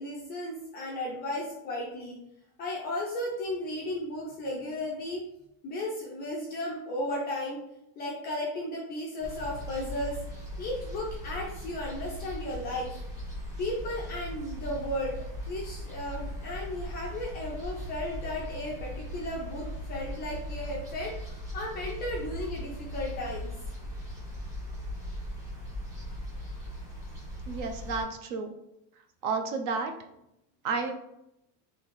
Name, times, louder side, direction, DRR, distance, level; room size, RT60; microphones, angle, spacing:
voice 1, 0.0-2.2 2.6-5.2 5.6-7.6 8.0-10.2 10.6-13.0 13.6-23.5, left 1 dB, 25° left, -3 dB, 0.3 m, -35 dB
sound 1, 9.2-28.0, equal, 10° right, 1.0 m, -39 dB
voice 2, 27.5-28.5 29.2-29.9 30.6-31.0, right 4 dB, 50° right, 6 dB, 0.6 m, -31 dB
3.2 x 2.8 x 4.0 m, 0.84 s
supercardioid pair, 160°, 46 cm